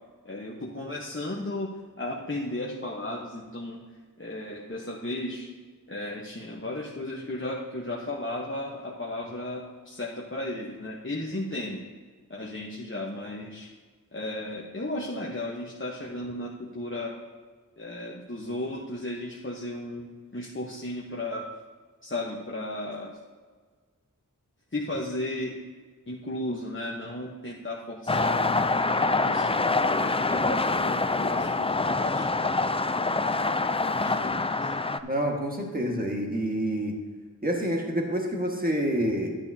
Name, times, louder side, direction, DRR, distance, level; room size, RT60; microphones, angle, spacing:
voice 1, 0.2-3.8 4.2-5.5 5.9-11.8 12.3-13.7 14.1-17.2 17.8-21.5 22.0-23.2 24.7-25.6 26.1-28.4 29.0-32.6 32.9-33.2 33.9-34.7, left 1 dB, 35° left, -3 dB, 1.0 m, -35 dB
sound 1, 28.1-35.0, left 3 dB, 20° left, 0.3 m, -25 dB
voice 2, 35.0-37.0 37.4-39.4, equal, 25° right, 0 dB, 1.6 m, -28 dB
12.0 x 9.5 x 2.8 m, 1.5 s
wide cardioid pair, 45°, 33 cm